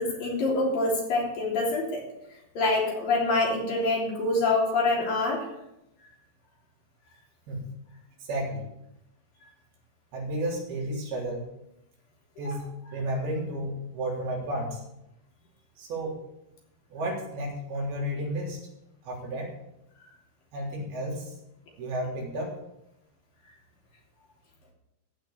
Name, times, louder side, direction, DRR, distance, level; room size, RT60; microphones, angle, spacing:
voice 1, 0.0-2.0 2.5-5.5 12.4-12.6, left 2 dB, 65° left, -2 dB, 5.0 m, -26 dB
voice 2, 8.3-8.7 10.1-11.4 12.4-14.8 15.8-16.2 16.9-18.6 19.0-19.5 20.5-21.3 21.8-22.5, right 1 dB, 85° right, -3 dB, 5.5 m, -32 dB
15.5 x 5.7 x 8.6 m, 0.86 s
omnidirectional pair, 4.3 m